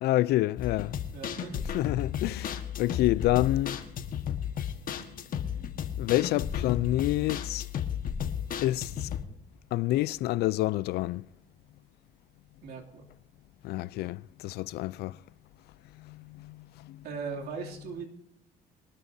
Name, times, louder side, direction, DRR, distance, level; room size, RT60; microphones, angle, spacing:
voice 1, 0.0-1.0 1.7-3.8 5.6-5.7 6.0-7.7 8.6-9.1 9.7-11.3 13.6-15.2 16.0-17.0, left 16 dB, 75° left, 0.4 m, -28 dB
sound 1, 0.6-9.2, left 8 dB, 55° left, 1.5 m, -34 dB
voice 2, 1.1-1.6 12.6-13.0 17.0-18.1, right 5 dB, 70° right, 2.8 m, -38 dB
23.5 x 12.5 x 2.8 m
cardioid pair, 110°, 17 cm